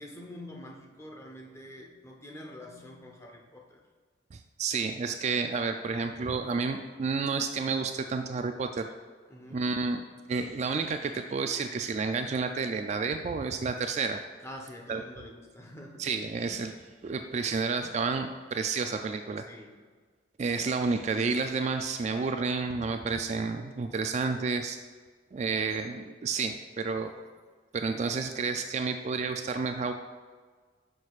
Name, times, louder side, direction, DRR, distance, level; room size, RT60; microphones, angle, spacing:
voice 1, 0.0-3.8 9.3-9.6 14.4-16.1 19.4-19.8, left 1 dB, 15° left, 0 dB, 0.8 m, -46 dB
voice 2, 4.3-8.9 9.5-10.0 10.3-14.2 14.9-15.0 16.0-16.7 17.0-19.5 20.4-24.8 25.3-27.1 27.7-29.9, right 4 dB, 35° right, 7 dB, 0.3 m, -30 dB
9.7 x 6.2 x 2.4 m, 1.5 s
head